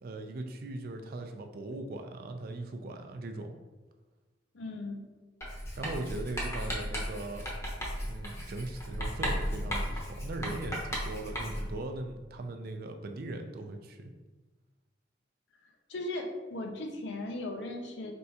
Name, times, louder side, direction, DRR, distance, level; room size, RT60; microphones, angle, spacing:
voice 1, 0.0-3.5 5.8-7.5 8.1-14.1, right 2 dB, 55° right, 6 dB, 0.4 m, -39 dB
voice 2, 4.5-5.0 15.9-18.1, left 2 dB, 70° left, 3 dB, 0.6 m, -37 dB
Writing, 5.4-11.8, equal, 15° left, 0.8 m, -35 dB
4.3 x 3.5 x 2.8 m, 1.2 s
head